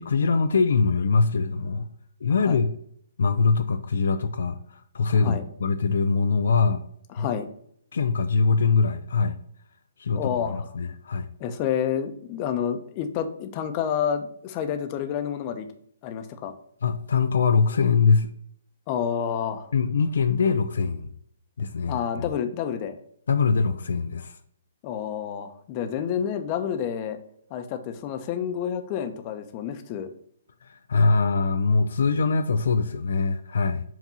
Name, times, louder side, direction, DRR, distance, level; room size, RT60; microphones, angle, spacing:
voice 1, 0.0-1.9 2.2-2.7 3.2-6.8 7.2-7.3 7.9-9.4 10.0-11.3 16.8-18.3 19.7-21.1 21.6-22.0 23.3-24.4 30.7-33.8, left 4 dB, 70° left, 7 dB, 0.5 m, -23 dB
voice 2, 7.1-7.5 10.1-10.7 11.4-15.7 16.0-16.5 18.9-19.7 21.9-23.0 24.8-27.2 27.5-30.1, left 8 dB, 35° left, 7 dB, 0.8 m, -29 dB
7.5 x 2.6 x 5.5 m, 0.67 s
hypercardioid pair, 135°, 0 cm